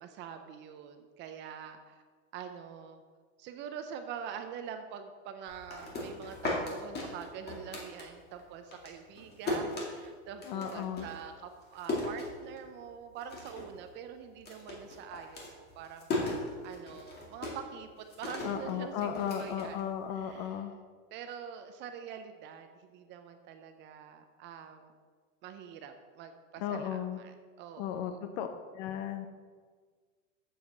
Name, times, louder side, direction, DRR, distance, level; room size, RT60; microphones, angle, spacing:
voice 1, 0.0-2.0 2.3-3.0 3.4-19.8 20.1-20.6 21.1-24.9 25.4-28.4, right 8 dB, 30° right, 7 dB, 0.5 m, -45 dB
sound 1, 5.5-8.4 8.7-12.9 13.2-13.8 14.0-20.3, left 2 dB, 25° left, 2.2 m, -37 dB
voice 2, 10.4-11.1 18.4-20.7 26.6-27.2 27.8-28.5 28.7-29.3, left 9 dB, 45° left, 7 dB, 0.7 m, -35 dB
7.2 x 6.8 x 6.4 m, 1.5 s
supercardioid pair, 140°, 40 cm